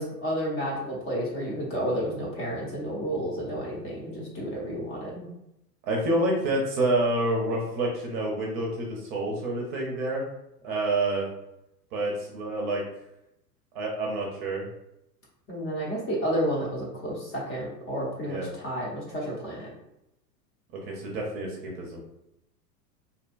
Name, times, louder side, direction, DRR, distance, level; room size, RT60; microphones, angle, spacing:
voice 1, 0.0-5.2 15.5-19.7, equal, 25° left, -4 dB, 0.8 m, -31 dB
voice 2, 5.8-10.2 10.6-11.3 11.9-12.8 13.7-14.6 18.3-18.5 20.9-22.0, right 1 dB, 40° right, -2 dB, 0.6 m, -28 dB
2.7 x 2.1 x 2.4 m, 0.84 s
figure-of-eight pair, 90°, 49 cm